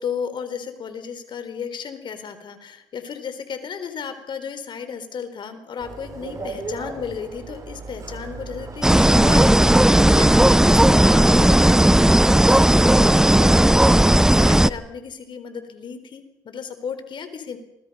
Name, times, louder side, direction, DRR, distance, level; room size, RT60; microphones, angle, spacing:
voice 1, 0.0-17.6, left 6 dB, 55° left, 10 dB, 4.0 m, -34 dB
sound 1, 5.8-11.3, right 3 dB, 35° right, 6.0 m, -37 dB
sound 2, 8.8-14.7, right 1 dB, 5° right, 0.9 m, -15 dB
28.0 x 21.5 x 5.6 m, 0.91 s
supercardioid pair, 60°, 10 cm